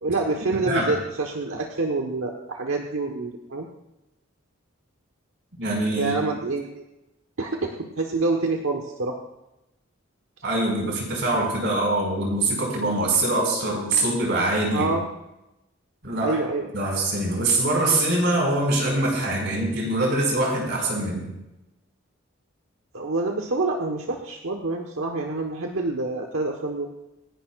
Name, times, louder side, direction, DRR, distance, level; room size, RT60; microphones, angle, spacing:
voice 1, 0.0-3.7 5.9-6.8 7.4-9.2 14.7-15.0 16.2-16.7 22.9-26.9, right 3 dB, 85° right, 1 dB, 1.2 m, -27 dB
voice 2, 0.5-1.0 5.6-6.2 10.4-14.9 16.0-16.4 16.7-21.3, right 2 dB, 60° right, -1 dB, 5.2 m, -24 dB
27.0 x 11.0 x 2.4 m, 0.93 s
head